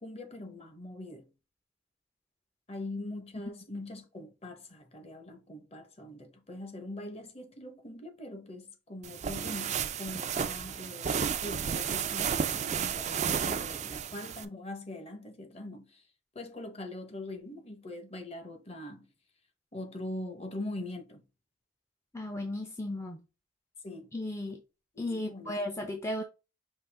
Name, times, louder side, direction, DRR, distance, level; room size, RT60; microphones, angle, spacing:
voice 1, 0.0-1.3 2.7-16.0 16.3-19.1 19.7-21.2 23.8-24.1 25.1-25.5, left 1 dB, 35° left, 0.9 m, -42 dB
sound 1, 9.0-14.5, right 7 dB, 40° right, 0.4 m, -32 dB
voice 2, 22.1-23.2 24.1-24.6 25.0-26.2, left 1 dB, 15° left, 0.5 m, -35 dB
5.5 x 2.8 x 3.3 m
head